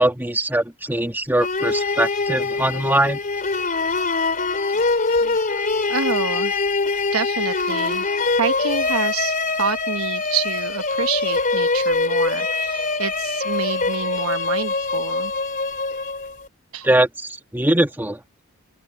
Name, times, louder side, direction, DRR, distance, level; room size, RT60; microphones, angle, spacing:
voice 1, 0.0-3.2 16.8-18.2, right 1 dB, 10° right, 1.4 m, -21 dB
sound 1, 1.4-16.5, left 3 dB, 40° left, 3.5 m, -23 dB
voice 2, 5.9-6.5 7.1-8.1 8.4-15.3 16.7-16.9, right 6 dB, 75° right, 1.1 m, -27 dB
open air
head